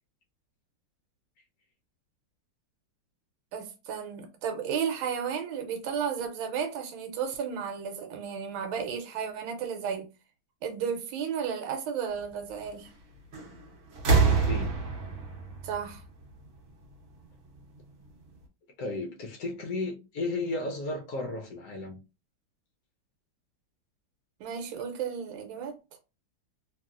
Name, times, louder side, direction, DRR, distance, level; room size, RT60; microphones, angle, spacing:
voice 1, 3.5-10.1 10.6-12.9 15.6-16.0 24.4-25.8, right 7 dB, 80° right, 1.4 m, -33 dB
sound 1, 13.3-13.6 13.9-16.7 17.8-17.9, right 4 dB, 60° right, 0.8 m, -26 dB
voice 2, 14.2-14.7 18.8-22.0, left 2 dB, 65° left, 1.0 m, -34 dB
2.9 x 2.7 x 2.4 m
omnidirectional pair, 2.2 m